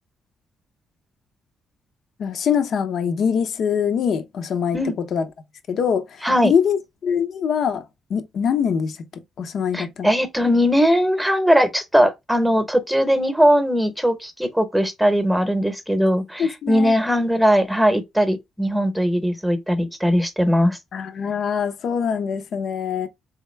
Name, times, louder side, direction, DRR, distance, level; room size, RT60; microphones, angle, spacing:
voice 1, 2.2-4.8 5.1-5.2 5.7-7.8 8.1-9.0 9.4-10.1 16.4-16.9 20.9-23.1, left 7 dB, 65° left, 0.7 m, -23 dB
voice 2, 9.7-20.8, equal, 5° right, 0.9 m, -19 dB
3.6 x 3.5 x 3.2 m
cardioid pair, 90°, 0 cm